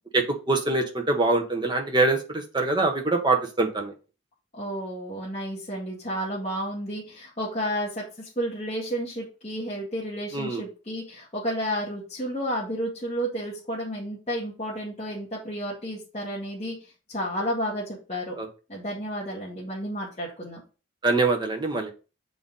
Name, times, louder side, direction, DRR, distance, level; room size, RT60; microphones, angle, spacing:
voice 1, 0.1-3.9 10.3-10.6 18.4-18.5 21.0-21.9, right 2 dB, 20° right, 2 dB, 1.1 m, -24 dB
voice 2, 4.5-16.7 17.1-18.3 18.7-20.6, equal, 30° left, -6 dB, 1.8 m, -31 dB
7.7 x 4.1 x 3.8 m, 0.33 s
head